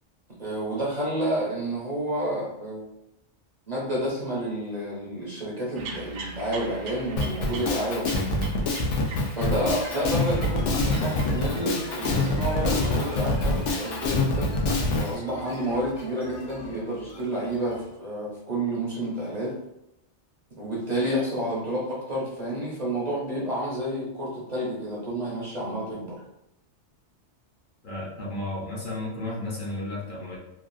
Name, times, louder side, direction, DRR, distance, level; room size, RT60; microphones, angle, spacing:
voice 1, 0.4-2.8 3.7-8.3 9.4-19.6 20.6-26.2, right 1 dB, 40° right, -5 dB, 0.7 m, -30 dB
sound 1, 5.7-13.3, right 3 dB, 85° right, 0.9 m, -42 dB
Drum kit, 7.2-15.1, left 2 dB, 85° left, 0.9 m, -25 dB
sound 2, 9.7-18.0, left 1 dB, 30° left, 0.5 m, -41 dB
voice 2, 27.8-30.4, left 2 dB, 50° left, -6 dB, 0.9 m, -33 dB
3.0 x 2.4 x 2.5 m, 0.86 s
omnidirectional pair, 1.2 m